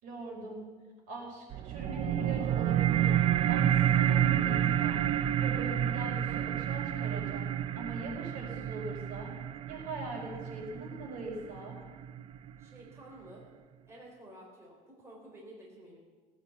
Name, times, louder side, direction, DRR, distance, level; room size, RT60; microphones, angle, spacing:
voice 1, 0.0-0.7 1.1-3.1 3.5-5.1 5.4-7.5 7.7-9.4 9.7-11.8, right 2 dB, 70° right, -1 dB, 5.3 m, -41 dB
sound 1, 1.5-12.5, right 10 dB, 40° right, 0.5 m, -29 dB
voice 2, 12.6-13.5 13.9-16.0, right 1 dB, 20° right, -2 dB, 3.6 m, -51 dB
17.5 x 8.7 x 8.3 m, 1.4 s
cardioid pair, 165°, 14 cm